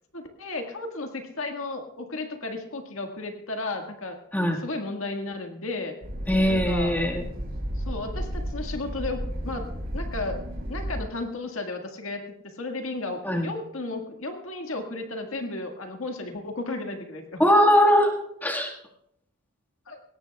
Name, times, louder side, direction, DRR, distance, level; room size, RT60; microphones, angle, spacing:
voice 1, 0.1-4.2 4.6-5.9 6.5-7.0 7.8-10.4 10.7-17.4 19.9-20.0, left 2 dB, 75° left, 4 dB, 1.8 m, -34 dB
sound 1, 6.0-11.0, equal, 50° right, 3.9 m, -33 dB
voice 2, 6.3-7.3 13.2-13.5 17.4-18.2 18.4-18.7, equal, 10° left, 0 dB, 1.7 m, -20 dB
20.5 x 17.5 x 2.3 m, 0.77 s
head